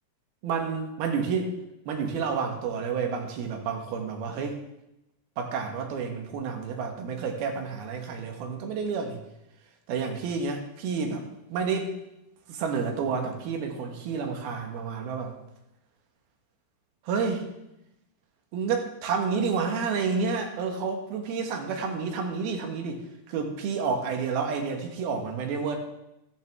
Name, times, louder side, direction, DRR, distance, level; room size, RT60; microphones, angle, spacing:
voice 1, 0.4-1.5 1.9-4.6 5.4-9.2 9.9-11.2 11.5-11.9 12.5-15.3 17.1-17.5 18.5-23.0 23.3-25.8, right 5 dB, 85° right, 4 dB, 3.4 m, -30 dB
14.5 x 14.0 x 3.6 m, 0.89 s
omnidirectional pair, 4.3 m